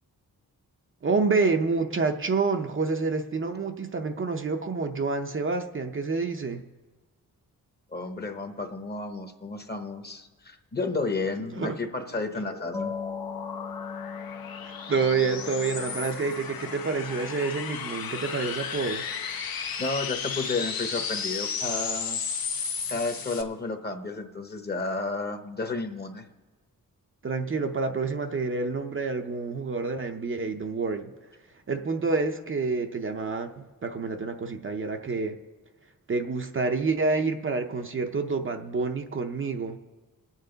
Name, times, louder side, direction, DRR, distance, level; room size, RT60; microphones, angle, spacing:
voice 1, 1.0-6.6 11.6-11.8 14.6-19.1 27.2-31.1 31.7-35.4 36.1-39.8, right 4 dB, 35° right, 5 dB, 0.6 m, -28 dB
voice 2, 7.9-12.9 18.9-19.0 19.8-22.2 22.9-26.3, left 3 dB, 30° left, 6 dB, 0.9 m, -32 dB
sound 1, 11.9-23.4, left 6 dB, 80° left, 1.1 m, -34 dB
sound 2, 12.7-18.9, left 5 dB, 10° left, 0.5 m, -41 dB
24.5 x 9.0 x 3.9 m, 1.3 s
wide cardioid pair, 170°, 35 cm